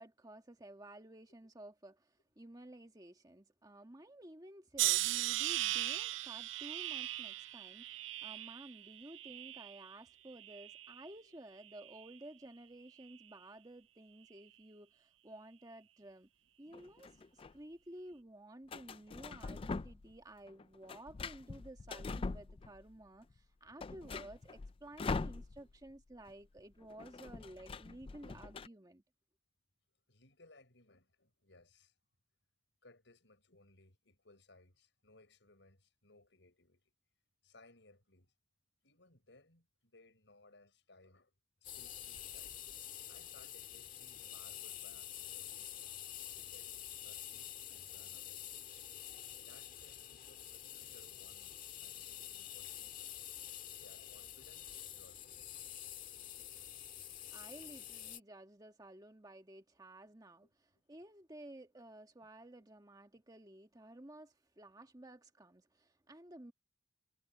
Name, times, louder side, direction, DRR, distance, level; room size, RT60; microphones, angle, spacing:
voice 1, 0.0-16.3 16.6-29.0 57.3-66.5, right 1 dB, 20° right, 1.5 m, -54 dB
sound 1, 4.8-9.9 10.4-11.1 11.8-12.1, right 15 dB, 85° right, 0.5 m, -38 dB
voice 2, 16.6-17.0 30.1-31.9 32.8-36.9 37.4-38.3 38.8-41.3 41.6-42.6 43.1-46.7 47.0-49.0 49.4-54.7 54.9-55.5 60.4-60.5, left 2 dB, 70° left, 7.1 m, -64 dB
sound 2, 16.7-17.5 18.7-20.2 20.5-23.0 23.3-23.4 23.7-25.9 26.1-26.3 26.6-28.7, left 4 dB, 30° left, 0.3 m, -43 dB
sound 3, 41.6-58.2, left 11 dB, 45° left, 1.8 m, -48 dB
head